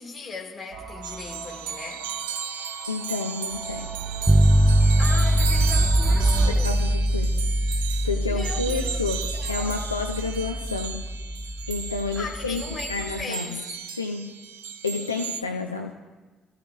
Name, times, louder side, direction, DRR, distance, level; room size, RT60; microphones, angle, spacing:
voice 1, 0.0-2.1 5.0-6.9 8.3-9.8 12.2-13.7, left 4 dB, 35° left, 0 dB, 4.1 m, -38 dB
sound 1, 0.7-6.5, right 4 dB, 55° right, 3.2 m, -31 dB
sound 2, 1.0-15.4, right 7 dB, 70° right, 0.7 m, -35 dB
voice 2, 2.9-3.9 6.5-7.5 7.7-11.0 11.7-12.6 12.9-13.6 14.0-14.4 14.8-15.9, left 4 dB, 85° left, 3 dB, 0.6 m, -30 dB
sound 3, 4.3-13.2, equal, 5° right, 0.4 m, -23 dB
27.0 x 15.0 x 2.5 m, 1.2 s
figure-of-eight pair, 45°, 0 cm